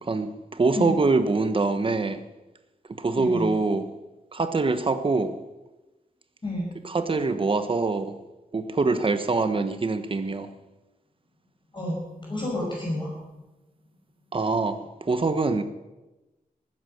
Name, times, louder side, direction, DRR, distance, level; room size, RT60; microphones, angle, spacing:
voice 1, 0.0-2.2 3.0-3.9 4.3-5.3 6.8-8.1 8.5-10.5 14.3-14.8 15.1-15.6, right 3 dB, 35° right, 9 dB, 1.2 m, -24 dB
voice 2, 3.2-3.5 6.4-6.7 11.7-13.4, left 1 dB, 30° left, -3 dB, 5.8 m, -30 dB
19.0 x 10.0 x 6.6 m, 1.1 s
wide cardioid pair, 140°, 15 cm